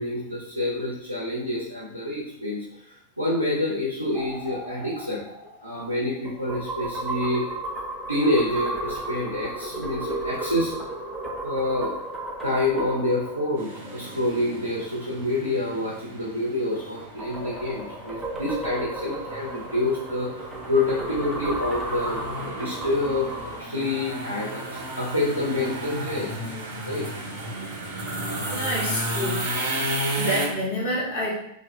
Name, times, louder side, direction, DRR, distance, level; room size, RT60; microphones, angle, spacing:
voice 1, 0.0-2.6 3.2-5.2 5.6-7.4 8.1-10.7 11.4-11.9 12.4-22.2 22.6-26.3 26.9-27.1, left 1 dB, 85° right, -4 dB, 0.4 m, -27 dB
sound 1, 4.1-14.7 16.7-23.6, right 2 dB, 10° right, 0.5 m, -34 dB
voice 2, 9.7-10.1 16.8-16.9 28.1-29.4 30.2-31.3, equal, 60° left, -5 dB, 0.9 m, -29 dB
sound 2, 13.6-30.5, right 1 dB, 55° right, 0.7 m, -34 dB
2.4 x 2.1 x 3.1 m, 0.75 s
figure-of-eight pair, 90°, 0 cm